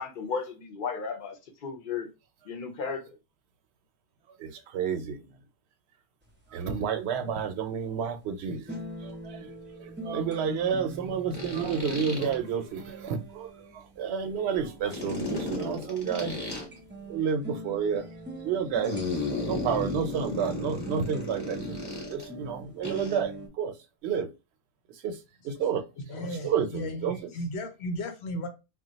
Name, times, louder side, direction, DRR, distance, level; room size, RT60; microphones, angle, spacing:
voice 1, 0.0-2.1 2.4-3.2, left 5 dB, 60° left, 0.7 m, -34 dB
voice 2, 4.4-5.2 6.5-8.8 9.0-9.5 9.8-16.4 17.1-18.1 18.4-18.9 19.4-21.8 22.1-23.7 24.0-24.3 25.0-25.2 25.4-25.8 26.4-27.3, right 7 dB, 85° right, 0.8 m, -30 dB
sound 1, 6.2-23.5, right 1 dB, 15° right, 0.4 m, -43 dB
sound 2, 8.7-8.8 11.3-12.4 14.9-16.6 18.8-22.3 22.8-23.2, left 2 dB, 25° left, 0.9 m, -34 dB
voice 3, 26.1-28.5, equal, 85° left, 1.0 m, -35 dB
2.3 x 2.2 x 3.8 m
omnidirectional pair, 1.1 m